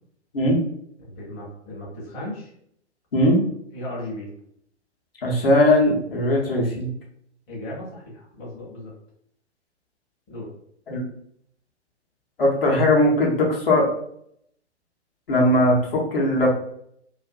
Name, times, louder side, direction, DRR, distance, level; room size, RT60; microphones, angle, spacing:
voice 1, 1.0-2.5 3.7-4.3 7.5-8.9 10.3-10.5, left 1 dB, 20° left, -6 dB, 0.8 m, -36 dB
voice 2, 3.1-3.4 5.2-6.9 10.9-11.0 12.4-13.9 15.3-16.6, left 1 dB, 55° left, -3 dB, 0.9 m, -19 dB
2.5 x 2.4 x 2.3 m, 0.69 s
figure-of-eight pair, 120°, 35 cm